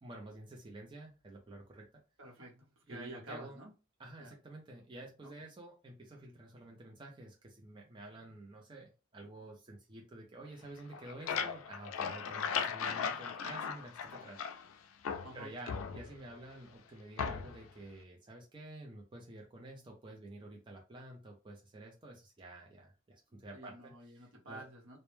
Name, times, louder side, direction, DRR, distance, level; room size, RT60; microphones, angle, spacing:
voice 1, 0.0-1.9 2.9-3.6 4.0-14.4 15.3-24.6, right 2 dB, 25° right, -1 dB, 0.4 m, -50 dB
voice 2, 2.2-3.7 4.2-4.3 5.2-5.3 15.2-15.5 23.5-25.0, right 2 dB, 75° right, -1 dB, 0.8 m, -50 dB
sound 1, 10.8-14.7 15.0-16.4 17.2-17.7, left 6 dB, 85° left, 0.3 m, -37 dB
2.1 x 2.1 x 3.0 m, 0.31 s
head